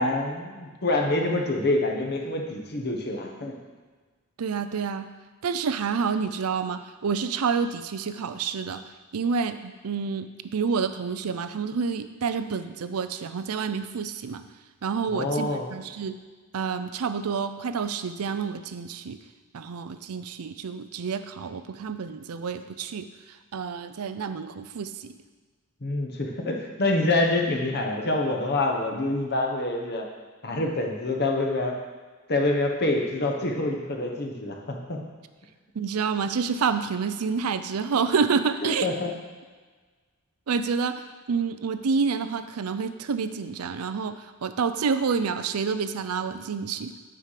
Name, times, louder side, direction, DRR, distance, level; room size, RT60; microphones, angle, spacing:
voice 1, 0.0-3.5 15.1-15.7 25.8-30.0 30.4-31.7 32.3-35.0 38.6-39.1, left 2 dB, 50° left, 1 dB, 1.2 m, -26 dB
voice 2, 4.4-5.1 5.4-8.9 9.1-14.4 14.8-16.2 16.5-19.2 19.5-23.1 23.5-25.1 35.7-38.9 40.5-40.9 41.3-46.9, right 5 dB, 90° right, 10 dB, 0.5 m, -28 dB
9.1 x 4.9 x 5.8 m, 1.4 s
head